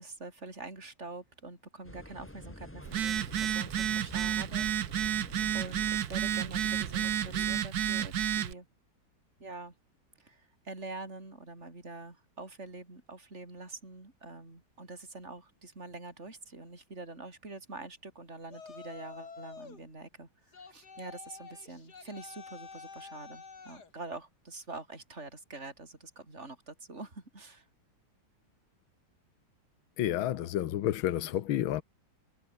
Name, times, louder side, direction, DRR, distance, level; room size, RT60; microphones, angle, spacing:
voice 1, 0.0-4.7 5.0-8.7 9.4-9.7 10.2-27.7, right 3 dB, 30° right, 5.5 m, -45 dB
sound 1, 1.8-7.6, left 1 dB, 5° left, 2.5 m, -49 dB
Telephone, 2.8-8.5, right 10 dB, 55° right, 1.3 m, -31 dB
Yell, 18.5-19.8 20.5-23.9, left 5 dB, 50° left, 3.1 m, -48 dB
voice 2, 30.0-31.8, left 12 dB, 80° left, 1.8 m, -30 dB
omnidirectional pair, 2.3 m